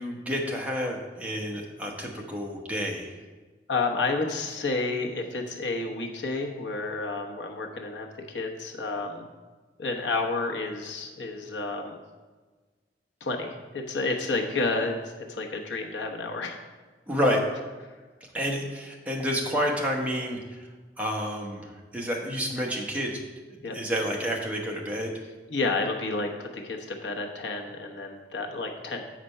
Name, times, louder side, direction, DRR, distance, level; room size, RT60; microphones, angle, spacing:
voice 1, 0.0-3.1 17.1-17.4 18.3-20.7 21.0-23.2 23.5-25.1, equal, 10° right, -1 dB, 1.0 m, -29 dB
voice 2, 3.7-9.3 9.8-12.0 13.2-16.6 23.6-23.8 25.5-29.0, left 3 dB, 90° left, 2 dB, 1.0 m, -30 dB
7.4 x 5.1 x 5.5 m, 1.3 s
head